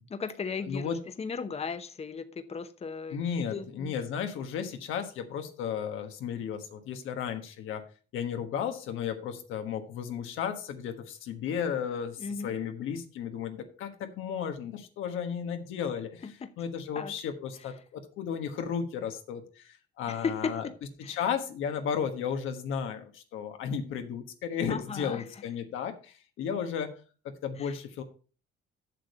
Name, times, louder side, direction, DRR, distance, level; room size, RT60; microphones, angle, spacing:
voice 1, 0.1-3.9 12.2-12.5 16.2-16.5 16.9-17.1 20.1-20.6 21.0-21.2 24.7-25.2 27.6-27.8, left 5 dB, 30° left, 0.8 m, -36 dB
voice 2, 0.7-1.0 3.1-7.8 8.1-16.2 16.6-20.7 21.0-27.0 27.4-28.0, left 7 dB, 90° left, 1.4 m, -34 dB
7.6 x 6.6 x 5.5 m
cardioid pair, 90°, 20 cm